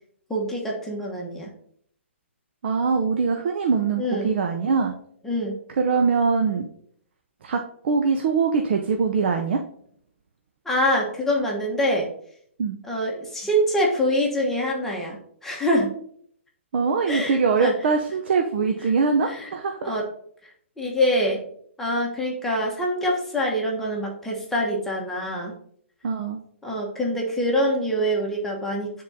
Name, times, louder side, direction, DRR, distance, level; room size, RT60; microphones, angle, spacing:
voice 1, 0.3-1.5 4.0-4.3 5.2-5.6 10.6-12.1 12.8-15.2 15.4-15.9 17.1-17.8 19.2-19.5 19.8-20.1 20.8-21.4 21.8-25.5 26.6-29.0, equal, 5° left, -2 dB, 1.1 m, -25 dB
voice 2, 2.6-4.9 5.8-6.7 7.4-9.6 12.6-12.8 16.7-19.8 26.0-26.4, right 5 dB, 55° right, 4 dB, 0.6 m, -22 dB
9.3 x 3.7 x 2.8 m, 0.65 s
hypercardioid pair, 140°, 7 cm